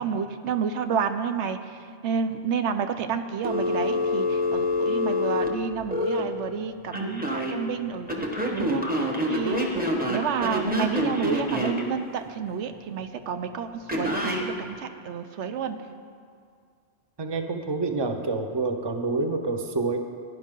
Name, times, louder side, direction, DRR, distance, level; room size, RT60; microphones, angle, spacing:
voice 1, 0.0-8.2 8.5-9.7 10.1-15.8, right 6 dB, 85° right, 9 dB, 1.0 m, -30 dB
Telephone, 3.4-6.2 6.9-7.5 8.1-11.8 13.9-14.4, left 1 dB, 10° right, 1.2 m, -26 dB
voice 2, 17.2-20.0, right 3 dB, 25° right, 5 dB, 0.7 m, -27 dB
17.0 x 10.5 x 3.8 m, 2.2 s
omnidirectional pair, 1.1 m